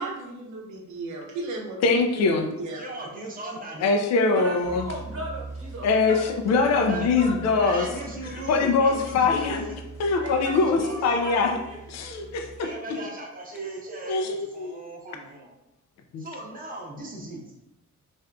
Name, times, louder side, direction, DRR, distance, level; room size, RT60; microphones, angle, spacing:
voice 1, 0.0-2.0 2.6-2.8, right 2 dB, 75° right, 0 dB, 0.8 m, -35 dB
voice 2, 1.8-2.5 3.8-4.9 5.8-6.1 6.4-7.9 8.5-9.6 10.0-11.6 11.9-12.5 14.0-14.8 16.1-16.2, left 4 dB, 60° left, 4 dB, 0.5 m, -22 dB
voice 3, 2.6-3.9 6.7-7.1 7.5-9.8 10.4-11.2 12.6-15.5 16.2-17.4, right 2 dB, 30° right, -2 dB, 0.9 m, -37 dB
voice 4, 4.3-6.8 7.1-7.6 7.9-8.1 10.1-11.8, right 2 dB, 50° right, -3 dB, 1.2 m, -37 dB
sound 1, 4.6-12.6, right 3 dB, 10° left, 0.7 m, -42 dB
3.5 x 2.6 x 2.2 m, 0.89 s
cardioid pair, 90°, 30 cm